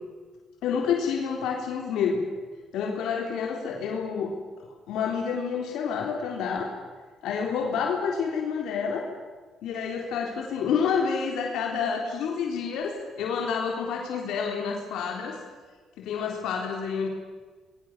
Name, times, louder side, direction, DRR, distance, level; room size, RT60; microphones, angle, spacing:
voice 1, 0.6-2.2 2.7-4.3 4.6-6.7 7.2-9.1 9.6-15.4 16.0-17.1, left 6 dB, 80° left, 1 dB, 3.7 m, -28 dB
28.0 x 21.5 x 7.4 m, 1.4 s
cardioid pair, 100°, 0 cm